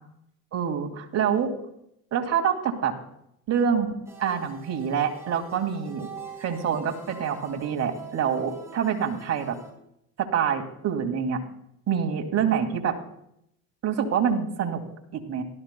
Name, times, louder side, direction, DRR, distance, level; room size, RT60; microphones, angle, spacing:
voice 1, 0.5-1.5 2.1-2.9 3.5-6.1 6.4-9.6 10.2-11.4 11.9-13.0 13.8-14.8 15.1-15.4, right 7 dB, 40° right, 3 dB, 2.1 m, -26 dB
sound 1, 4.0-9.7, right 5 dB, 5° right, 4.2 m, -45 dB
18.0 x 12.5 x 2.2 m, 0.74 s
supercardioid pair, 85°, 38 cm